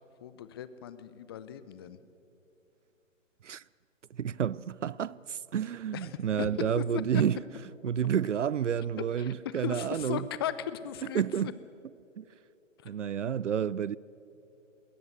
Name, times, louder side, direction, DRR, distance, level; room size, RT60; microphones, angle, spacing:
voice 1, 0.2-2.0 5.9-6.1 6.4-6.8 9.2-11.2, left 10 dB, 20° left, 0.6 m, -37 dB
voice 2, 4.1-7.4 7.8-10.3 11.1-11.5 12.2-12.3 12.8-14.0, right 8 dB, 70° right, 0.5 m, -30 dB
21.5 x 17.5 x 8.2 m
figure-of-eight pair, 130°, 38 cm